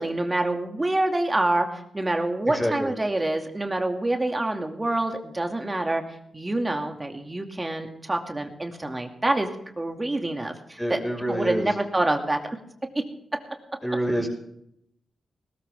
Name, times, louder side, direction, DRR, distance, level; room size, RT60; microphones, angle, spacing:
voice 1, 0.0-6.0 6.3-9.5 9.8-11.0 11.3-12.4, right 2 dB, 25° right, 4 dB, 2.4 m, -26 dB
voice 2, 2.5-2.9 10.8-11.7 13.8-14.3, equal, 10° left, 0 dB, 6.1 m, -27 dB
20.0 x 13.5 x 3.6 m, 0.76 s
supercardioid pair, 45°, 0 cm